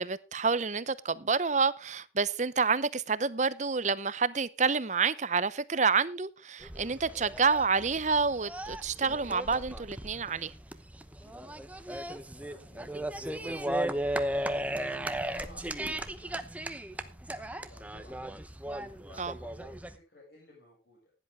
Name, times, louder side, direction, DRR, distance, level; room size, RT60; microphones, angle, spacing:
voice 1, 0.0-10.5 19.2-19.3, right 5 dB, 40° right, 0.8 m, -28 dB
sound 1, 6.6-20.0, right 1 dB, 10° right, 0.9 m, -36 dB
voice 2, 11.2-11.6 11.8-13.0 13.4-16.5 16.9-18.2 18.5-21.1, left 1 dB, 60° left, 6.6 m, -57 dB
16.0 x 10.5 x 3.4 m
head